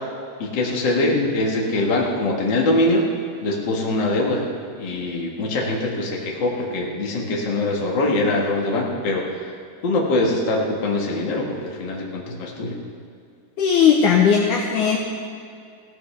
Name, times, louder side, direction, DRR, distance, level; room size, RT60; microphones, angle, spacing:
voice 1, 0.4-3.0 3.4-4.4 4.8-9.5 9.8-12.7, left 2 dB, 50° left, -2 dB, 1.4 m, -23 dB
voice 2, 13.6-15.0, left 7 dB, 85° left, 0 dB, 1.8 m, -18 dB
16.0 x 13.5 x 3.4 m, 2.4 s
omnidirectional pair, 4.7 m